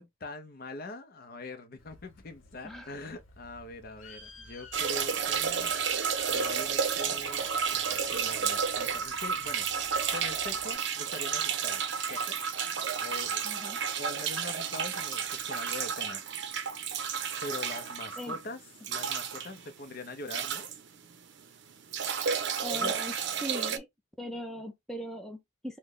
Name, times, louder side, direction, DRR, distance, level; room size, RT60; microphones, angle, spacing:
voice 1, 0.0-5.7 6.3-11.8 12.1-12.4 13.0-13.5 14.0-16.8 17.4-18.6 18.9-20.7 22.7-23.0, left 2 dB, 50° left, 0.6 m, -43 dB
Bird, 1.8-10.7, left 3 dB, 85° left, 0.9 m, -53 dB
voice 2, 2.6-2.9 13.4-13.8 18.2-18.4 22.6-23.1 23.4-23.9 24.2-25.8, equal, ahead, 0.4 m, -39 dB
sound 1, 4.7-21.4 21.7-23.8, right 7 dB, 60° right, 0.5 m, -31 dB
3.1 x 2.1 x 3.7 m
head